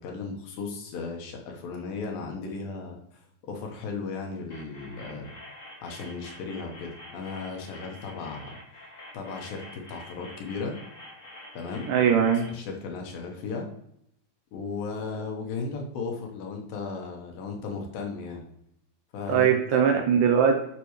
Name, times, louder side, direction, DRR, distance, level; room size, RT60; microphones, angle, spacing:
voice 1, 0.0-5.3 5.8-8.5 9.1-10.7 11.5-12.1 12.5-13.6 14.5-18.4 19.1-19.8, left 4 dB, 70° left, 2 dB, 2.8 m, -36 dB
sound 1, 4.5-12.5, left 1 dB, 35° left, 1.2 m, -47 dB
voice 2, 11.9-12.5 19.3-20.7, right 7 dB, 75° right, 2 dB, 2.1 m, -21 dB
10.5 x 6.0 x 3.2 m, 0.76 s
omnidirectional pair, 4.4 m